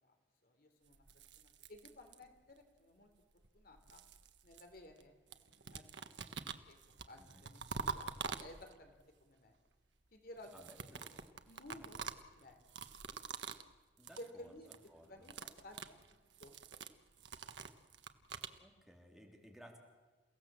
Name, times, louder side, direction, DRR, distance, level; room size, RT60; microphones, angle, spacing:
voice 1, 0.4-1.0 1.4-3.1 3.5-4.0 4.4-6.2 6.6-9.5 10.1-10.9 11.5-12.0 12.3-12.6 14.2-14.7 15.0-15.8 16.4-16.5, left 1 dB, 55° left, 5 dB, 3.3 m, -56 dB
sound 1, 0.9-2.5 3.4-5.0 5.3-8.9 10.4-13.7 14.0-14.3 14.6-14.9 15.2-18.6, right 5 dB, 80° right, 1.3 m, -47 dB
voice 2, 7.2-7.5 10.5-11.3 11.8-11.9 14.0-14.5 14.9-15.3 18.6-19.8, equal, ahead, 1 dB, 3.2 m, -59 dB
29.5 x 17.0 x 7.5 m, 1.3 s
head